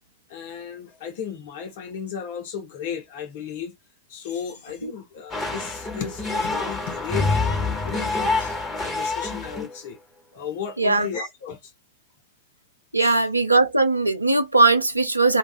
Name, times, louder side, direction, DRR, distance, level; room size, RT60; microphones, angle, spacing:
voice 1, 0.3-3.7 4.1-10.0 10.3-11.7 13.0-13.3, left 7 dB, 55° left, 0.8 m, -35 dB
sound 1, 5.3-9.7, left 3 dB, 20° left, 1.4 m, -26 dB
voice 2, 12.9-15.4, right 3 dB, 85° right, 0.4 m, -19 dB
2.7 x 2.4 x 2.3 m
figure-of-eight pair, 90°, 0 cm